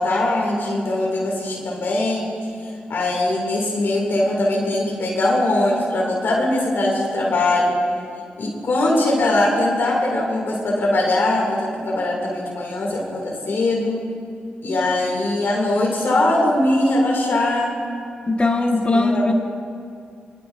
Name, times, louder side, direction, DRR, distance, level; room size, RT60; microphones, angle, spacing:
voice 1, 0.0-2.3 2.9-7.8 8.4-14.0 14.6-17.7 18.9-19.3, left 1 dB, 70° left, -3 dB, 2.5 m, -21 dB
voice 2, 18.3-19.3, left 2 dB, 30° left, 3 dB, 1.4 m, -19 dB
24.0 x 11.5 x 2.6 m, 2.3 s
cardioid pair, 60°, 4 cm